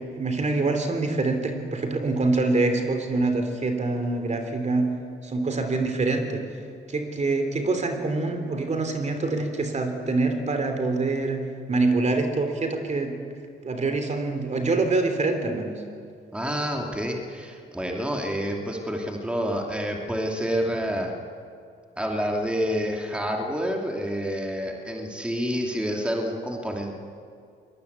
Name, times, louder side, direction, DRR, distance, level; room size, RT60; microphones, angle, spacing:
voice 1, 0.0-4.9 5.2-6.4 6.9-11.4 11.7-13.1 13.6-15.8, right 3 dB, 35° right, 6 dB, 3.2 m, -25 dB
voice 2, 16.3-21.1 22.0-26.9, equal, 5° right, 1 dB, 2.8 m, -28 dB
23.0 x 20.0 x 8.3 m, 2.3 s
cardioid pair, 90°, 20 cm